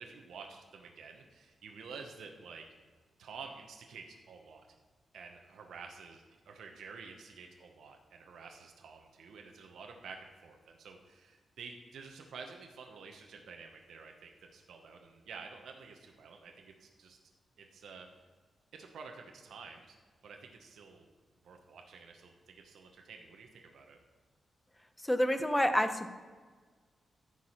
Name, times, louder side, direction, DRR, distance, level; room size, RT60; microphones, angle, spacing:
voice 1, 0.0-2.7 3.2-4.7 5.1-17.2 17.6-18.1 18.7-20.0 20.2-21.1 21.4-24.0, right 5 dB, 85° right, 3 dB, 1.0 m, -50 dB
voice 2, 25.0-26.1, equal, 5° left, 9 dB, 0.8 m, -28 dB
14.0 x 4.9 x 5.7 m, 1.4 s
wide cardioid pair, 135°, 0 cm